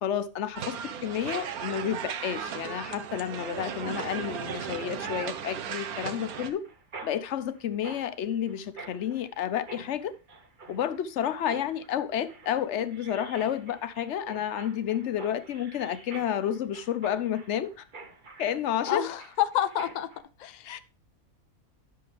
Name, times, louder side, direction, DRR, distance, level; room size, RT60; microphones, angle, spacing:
voice 1, 0.0-6.6 7.0-10.1 10.7-17.7 18.4-19.0 20.6-20.8, left 9 dB, 60° left, 0.9 m, -30 dB
sound 1, 0.5-6.5, right 7 dB, 85° right, 1.3 m, -36 dB
Mechanisms, 6.0-20.2, right 3 dB, 35° right, 1.1 m, -48 dB
voice 2, 18.9-20.1 20.4-20.8, left 11 dB, 90° left, 0.4 m, -29 dB
11.0 x 6.6 x 3.3 m
omnidirectional pair, 1.5 m